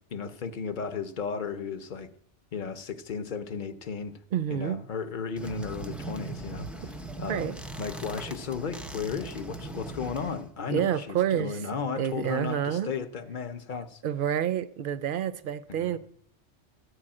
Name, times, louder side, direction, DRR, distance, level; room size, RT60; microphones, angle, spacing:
voice 1, 0.1-2.1 2.5-4.2 4.5-6.7 7.2-14.0 15.7-16.0, left 6 dB, 50° left, 0.7 m, -34 dB
voice 2, 4.3-4.8 7.3-7.5 10.7-11.6 12.0-12.9 14.0-16.0, right 10 dB, 60° right, 0.6 m, -28 dB
sound 1, 5.4-10.5, right 2 dB, ahead, 0.4 m, -39 dB
14.0 x 4.8 x 8.7 m
omnidirectional pair, 1.2 m